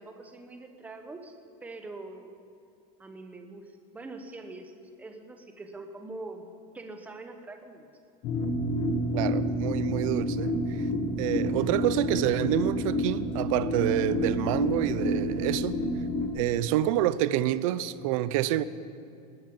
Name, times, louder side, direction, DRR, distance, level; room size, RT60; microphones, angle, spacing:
voice 1, 0.0-1.3 1.6-2.3 3.0-6.4 6.7-7.9, right 2 dB, 5° right, 0.9 m, -43 dB
sound 1, 8.2-16.3, left 1 dB, 35° left, 1.7 m, -29 dB
voice 2, 9.1-10.9 11.2-15.8 16.3-18.6, right 13 dB, 55° right, 0.6 m, -28 dB
19.5 x 13.5 x 5.4 m
supercardioid pair, 175°, 20 cm